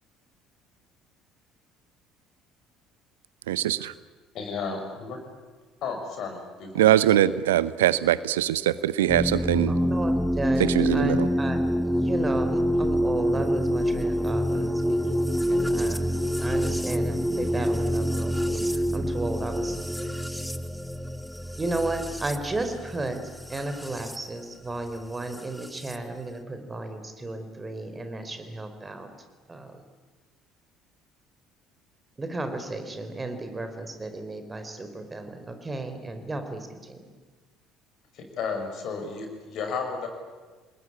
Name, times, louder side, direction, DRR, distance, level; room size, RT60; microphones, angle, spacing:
voice 1, 3.5-3.9 6.7-9.7 10.6-11.3, right 13 dB, 70° right, 17 dB, 0.8 m, -22 dB
voice 2, 4.3-5.2 5.8-6.9 38.1-40.1, left 5 dB, 50° left, 4 dB, 6.4 m, -33 dB
sound 1, 9.1-24.2 25.3-26.0, equal, ahead, 1.2 m, -27 dB
voice 3, 9.7-16.0 16.4-20.2 21.6-23.2 23.5-29.1 29.5-29.8 32.2-37.0, right 2 dB, 20° right, 7 dB, 4.4 m, -34 dB
28.0 x 20.5 x 9.9 m, 1.4 s
figure-of-eight pair, 55°, 0 cm